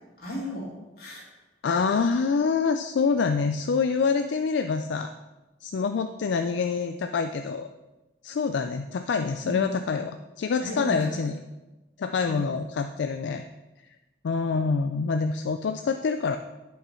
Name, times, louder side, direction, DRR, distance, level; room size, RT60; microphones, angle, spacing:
voice 1, 0.2-1.2 9.4-9.6 10.6-11.3 12.3-12.5, equal, 55° left, -5 dB, 2.7 m, -35 dB
voice 2, 1.6-5.1 5.6-7.7 8.2-11.4 12.0-13.4 14.2-16.4, left 5 dB, 75° left, 7 dB, 0.4 m, -26 dB
8.5 x 5.8 x 4.4 m, 1.1 s
head